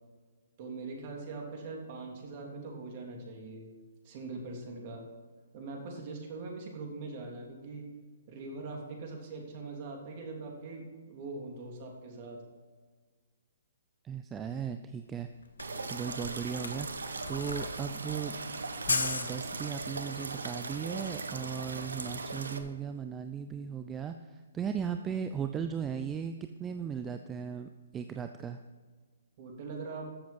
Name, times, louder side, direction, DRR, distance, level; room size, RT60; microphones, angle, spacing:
voice 1, 0.6-3.7 4.0-5.1 5.5-7.9 8.3-12.4 29.4-30.1, right 3 dB, 45° right, 0 dB, 3.2 m, -42 dB
voice 2, 14.0-15.3 15.9-16.9 17.3-18.4 18.8-28.6, right 7 dB, 15° right, 8 dB, 0.5 m, -37 dB
Camera, 15.1-15.2 15.4-20.0, left 4 dB, 85° left, 1.3 m, -36 dB
sound 1, 15.6-22.6, right 3 dB, 80° right, 1.1 m, -39 dB
14.0 x 7.6 x 5.4 m, 1.5 s
hypercardioid pair, 135°, 0 cm